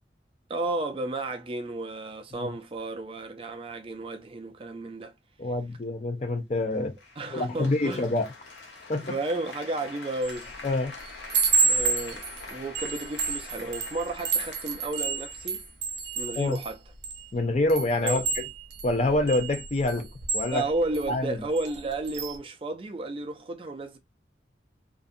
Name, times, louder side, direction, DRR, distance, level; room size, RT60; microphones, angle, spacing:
voice 1, 0.5-5.1 7.2-8.1 9.0-10.6 11.6-15.6 16.2-16.8 18.0-18.3 20.5-24.0, right 2 dB, 30° right, 0.4 m, -33 dB
voice 2, 5.4-6.9 7.3-8.3 8.9-9.1 10.6-10.9 16.4-16.6 17.3-18.5 18.8-20.1 20.3-20.6 21.1-21.4, left 2 dB, 40° left, 0.4 m, -26 dB
Applause, 7.0-16.0, left 3 dB, 75° left, 0.9 m, -45 dB
Chime, 10.2-10.5 10.9-17.2 17.7-21.1 21.6-21.8 22.0-22.4, right 5 dB, 75° right, 0.7 m, -29 dB
2.6 x 2.2 x 2.5 m
head